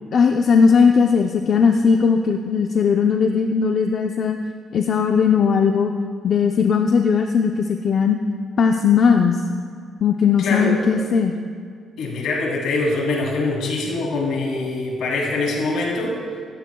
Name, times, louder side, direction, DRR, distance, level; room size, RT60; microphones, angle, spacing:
voice 1, 0.1-4.4 4.7-5.9 6.2-8.2 8.6-9.4 10.0-11.4, left 6 dB, 55° left, 4 dB, 0.6 m, -18 dB
voice 2, 10.4-10.9 12.0-16.4, left 2 dB, 80° left, -2 dB, 2.7 m, -24 dB
16.0 x 14.0 x 2.3 m, 2.1 s
cardioid pair, 90°, 0 cm